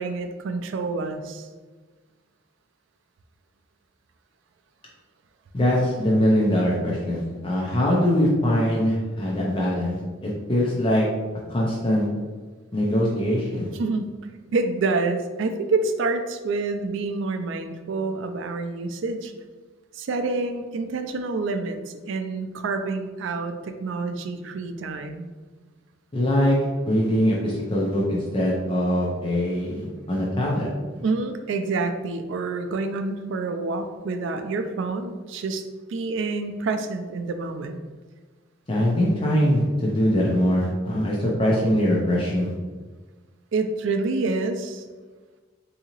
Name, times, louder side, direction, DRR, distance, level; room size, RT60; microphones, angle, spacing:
voice 1, 0.0-1.5 13.7-14.2 14.5-19.3 19.9-25.3 31.0-35.6 35.9-37.8 43.5-44.8, right 3 dB, 70° right, 7 dB, 0.3 m, -27 dB
voice 2, 5.5-11.1 11.5-12.1 12.7-13.7 26.1-26.6 26.9-30.7 38.7-42.5, left 1 dB, 25° left, -4 dB, 0.5 m, -22 dB
3.7 x 2.8 x 2.9 m, 1.4 s
head